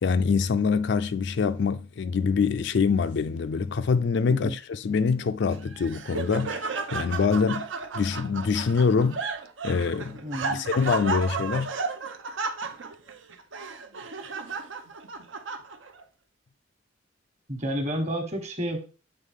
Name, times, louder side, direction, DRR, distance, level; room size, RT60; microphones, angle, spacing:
voice 1, 0.0-7.7 7.9-9.2 9.6-10.2 10.5-11.7, left 5 dB, 60° left, 0.4 m, -25 dB
Laughter, 5.5-16.0, right 4 dB, 75° right, 0.7 m, -33 dB
voice 2, 10.2-10.6 17.5-18.8, equal, 35° right, 1.3 m, -30 dB
7.3 x 4.0 x 3.5 m
head